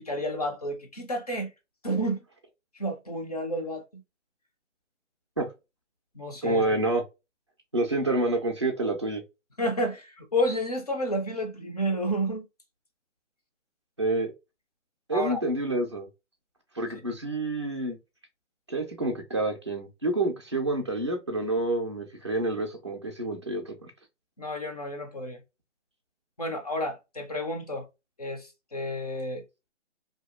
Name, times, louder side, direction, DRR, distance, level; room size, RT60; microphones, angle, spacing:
voice 1, 0.0-1.5 1.8-2.2 2.7-4.0 6.1-6.6 9.6-12.5 15.1-15.4 24.4-25.4 26.4-27.9 28.2-29.4, equal, 35° left, 0.5 m, -30 dB
voice 2, 6.4-7.0 7.7-9.2 14.0-14.3 15.1-16.1 16.8-18.0 18.7-23.9, right 2 dB, 25° right, 0.4 m, -28 dB
2.8 x 2.3 x 2.3 m
hypercardioid pair, 160°, 36 cm